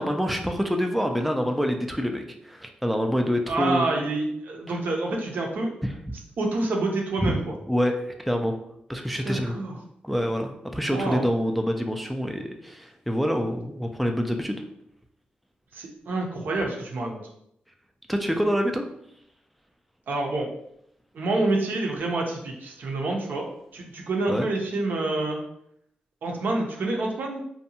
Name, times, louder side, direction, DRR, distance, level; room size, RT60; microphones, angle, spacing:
voice 1, 0.0-3.9 7.2-7.3 7.7-8.6 8.9-9.6 10.0-14.6 18.1-18.8 24.3-24.5, equal, ahead, 4 dB, 0.3 m, -26 dB
voice 2, 3.5-5.7 6.4-7.5 9.2-9.8 10.9-11.3 15.7-17.2 20.1-20.5 21.1-23.5 23.7-25.4 26.2-27.4, right 2 dB, 70° right, 0 dB, 0.6 m, -27 dB
2.6 x 2.2 x 2.7 m, 0.74 s
cardioid pair, 75°, 3 cm